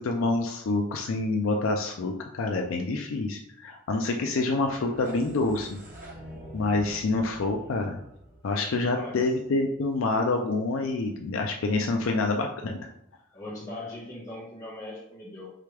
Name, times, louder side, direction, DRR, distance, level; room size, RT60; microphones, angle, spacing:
voice 1, 0.0-5.8 6.5-8.0 8.4-12.9, left 3 dB, 80° left, 3 dB, 0.4 m, -27 dB
sound 1, 4.6-9.5, right 1 dB, 40° right, 1.1 m, -46 dB
voice 2, 8.9-9.3 13.3-15.5, left 1 dB, 15° left, -6 dB, 1.3 m, -40 dB
4.8 x 3.3 x 3.3 m, 0.79 s
head